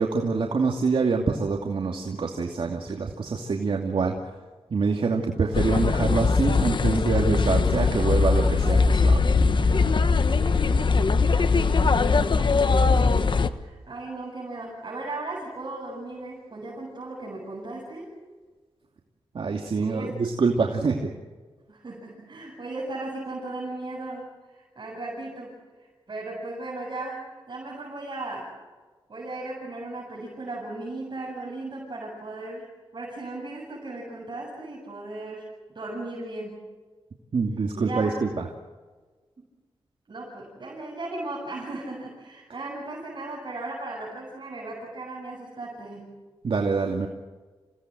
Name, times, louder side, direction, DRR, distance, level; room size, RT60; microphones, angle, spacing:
voice 1, 0.0-4.1 4.7-9.3 19.3-21.1 37.3-38.4 46.4-47.1, right 4 dB, 65° right, 2 dB, 2.6 m, -25 dB
sound 1, 5.5-13.5, left 4 dB, 55° left, 1.3 m, -21 dB
voice 2, 10.1-11.0 11.3-18.2 19.7-20.2 21.7-28.6 29.1-36.6 37.7-38.3 39.4-39.5 40.1-46.2, right 2 dB, 50° right, -4 dB, 7.7 m, -37 dB
29.0 x 18.0 x 7.8 m, 1.3 s
wide cardioid pair, 80°, 10 cm